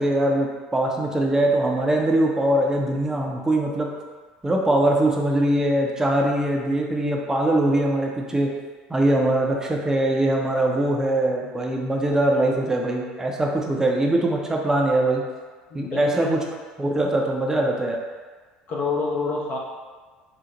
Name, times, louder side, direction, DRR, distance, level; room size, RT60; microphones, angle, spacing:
voice 1, 0.0-3.9 4.4-8.5 8.9-15.2 15.7-16.4 16.8-18.0, right 1 dB, 15° right, -1 dB, 0.6 m, -22 dB
voice 2, 15.7-16.3 18.7-19.6, left 4 dB, 50° left, -2 dB, 0.7 m, -27 dB
3.9 x 2.1 x 2.9 m, 1.4 s
hypercardioid pair, 70°, 4 cm